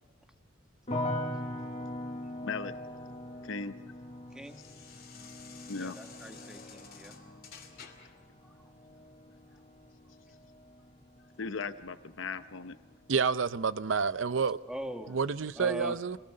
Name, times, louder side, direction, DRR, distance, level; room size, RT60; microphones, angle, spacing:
sound 1, 0.9-11.9 12.2-13.0, left 1 dB, 35° left, 2.6 m, -41 dB
voice 1, 2.4-2.7 3.4-3.8 5.7-6.0 11.4-12.8, left 4 dB, 75° left, 0.7 m, -37 dB
sound 2, 2.8-8.2, left 6 dB, 50° left, 2.7 m, -53 dB
voice 2, 4.3-4.6 5.7-7.2 8.4-8.7 14.7-15.2 15.6-16.0, right 1 dB, 5° right, 1.4 m, -42 dB
voice 3, 13.1-14.6 15.1-16.2, right 5 dB, 70° right, 0.6 m, -29 dB
26.0 x 20.0 x 6.5 m
head